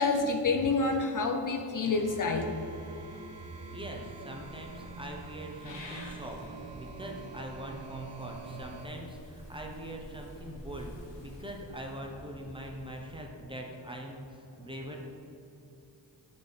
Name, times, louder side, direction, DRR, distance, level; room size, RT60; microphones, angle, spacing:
voice 1, 0.0-2.5, left 3 dB, 50° left, 4 dB, 0.6 m, -28 dB
sound 1, 1.9-8.9, right 4 dB, 75° right, 0.9 m, -45 dB
voice 2, 3.7-6.4 6.7-15.0, right 1 dB, 10° right, 0 dB, 0.9 m, -42 dB
Purr / Meow, 4.3-13.2, left 1 dB, 80° left, 1.3 m, -49 dB
6.2 x 5.5 x 4.0 m, 2.8 s
cardioid pair, 80°, 43 cm